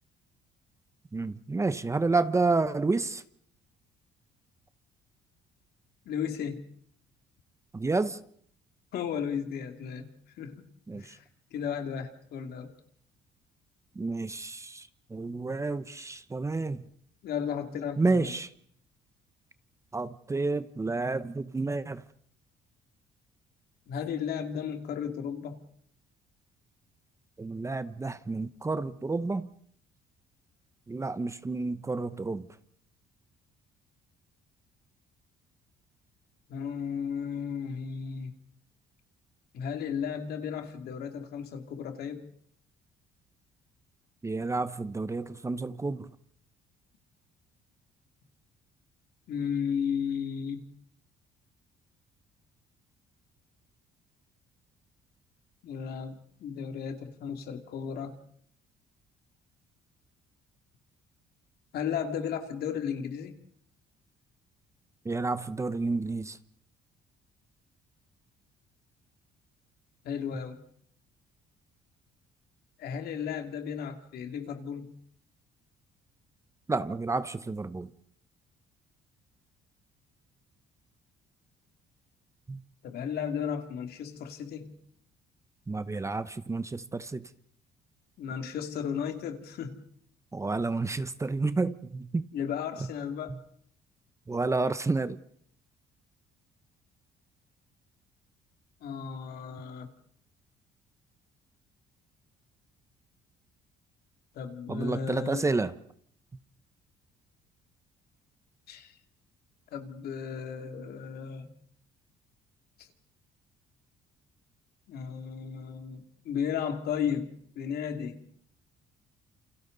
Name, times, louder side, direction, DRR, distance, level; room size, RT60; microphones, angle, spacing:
voice 1, 1.1-3.2 7.7-8.2 10.9-11.2 14.0-16.8 18.0-18.5 19.9-22.0 27.4-29.5 30.9-32.5 44.2-46.1 65.0-66.4 76.7-77.9 82.5-82.6 85.7-87.2 90.3-92.3 93.3-93.4 94.3-95.2 104.7-105.7, right 3 dB, 15° right, 0.9 m, -30 dB
voice 2, 6.1-6.6 8.9-10.1 10.4-10.6 10.9-11.2 11.5-12.7 17.2-18.3 23.9-25.6 36.5-38.3 39.5-42.3 49.3-50.7 55.6-58.1 61.7-63.4 70.0-70.6 72.8-75.0 82.8-84.8 88.2-89.8 92.3-93.4 98.8-99.9 104.3-105.5 108.7-108.9 109.7-111.5 112.8-112.9 114.9-118.3, left 7 dB, 70° left, 2.7 m, -34 dB
29.0 x 28.5 x 4.1 m
cardioid pair, 110°, 17 cm